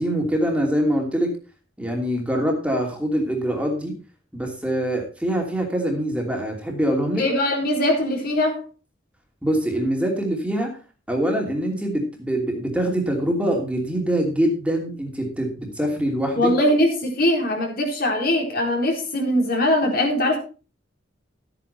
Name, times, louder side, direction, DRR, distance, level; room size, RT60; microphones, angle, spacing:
voice 1, 0.0-1.3 1.8-3.9 4.3-7.2 9.4-10.7 11.1-16.5, right 1 dB, 5° right, 0 dB, 2.8 m, -24 dB
voice 2, 7.2-8.6 16.4-20.4, left 1 dB, 55° left, 1 dB, 4.2 m, -21 dB
13.0 x 9.1 x 4.3 m, 0.35 s
head